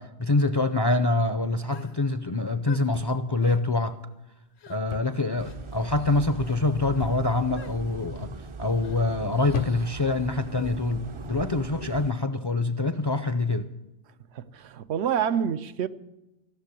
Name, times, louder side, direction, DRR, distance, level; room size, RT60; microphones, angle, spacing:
voice 1, 0.0-4.0 4.7-13.7, left 2 dB, 35° left, 0.4 m, -25 dB
sound 1, 1.7-2.0 2.7-2.9 3.4-3.7 4.6-4.8 5.4-5.6 6.3-6.6 7.6-7.8 8.8-9.0 10.6-10.8, left 9 dB, 80° left, 1.1 m, -46 dB
sound 2, 2.9-3.5 4.9-5.3 5.6-6.0 7.0-7.5 8.3-8.6 9.5-10.1 11.1-11.3, left 7 dB, 60° left, 0.7 m, -37 dB
sound 3, 5.4-12.1, right 4 dB, 40° right, 0.4 m, -40 dB
voice 2, 14.3-15.9, right 8 dB, 80° right, 0.9 m, -27 dB
15.0 x 6.8 x 9.8 m
omnidirectional pair, 1.1 m